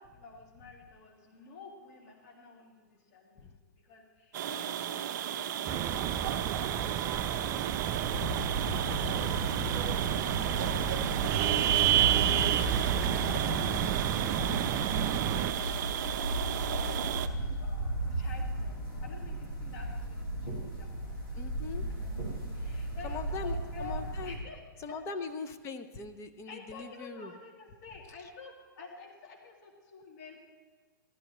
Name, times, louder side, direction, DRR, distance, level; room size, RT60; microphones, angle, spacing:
voice 1, 0.0-7.5 7.8-15.0 15.4-21.1 22.0-22.1 22.5-24.6 24.9-25.0 26.4-30.4, left 4 dB, 50° left, 0 dB, 2.3 m, -51 dB
sound 1, 4.3-17.3, right 10 dB, 55° right, 0.7 m, -34 dB
sound 2, 5.7-15.5, right 11 dB, 25° right, 0.4 m, -30 dB
sound 3, 8.1-24.4, right 1 dB, 85° left, 3.2 m, -36 dB
voice 2, 21.3-21.8 23.0-24.4 24.8-27.3, left 4 dB, 25° left, 9 dB, 0.7 m, -40 dB
14.0 x 12.0 x 3.0 m, 1.5 s
hypercardioid pair, 130°, 12 cm